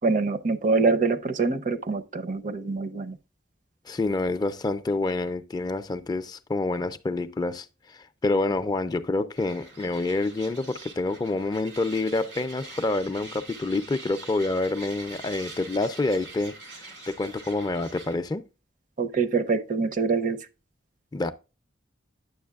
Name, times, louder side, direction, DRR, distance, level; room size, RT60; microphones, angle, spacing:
voice 1, 0.0-3.2 19.0-20.5, right 4 dB, 45° right, 0.6 m, -25 dB
voice 2, 3.9-18.4 21.1-21.3, left 2 dB, 20° left, 0.4 m, -27 dB
sound 1, 9.3-18.1, right 3 dB, 85° right, 2.6 m, -44 dB
9.4 x 6.9 x 2.3 m
head